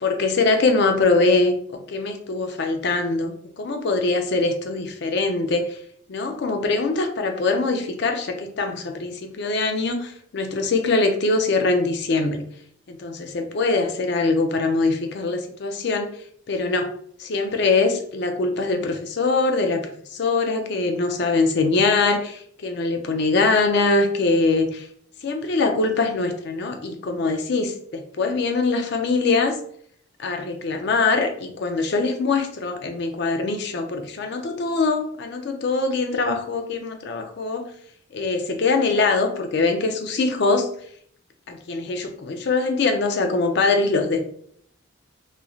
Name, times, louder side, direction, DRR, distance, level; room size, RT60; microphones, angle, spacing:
voice 1, 0.0-5.8 6.1-12.4 12.9-16.1 16.5-16.9 17.2-24.9 25.2-29.6 30.2-37.6 38.1-40.7 41.5-44.2, left 3 dB, 55° left, 6 dB, 0.4 m, -23 dB
3.0 x 2.5 x 2.3 m, 0.62 s
head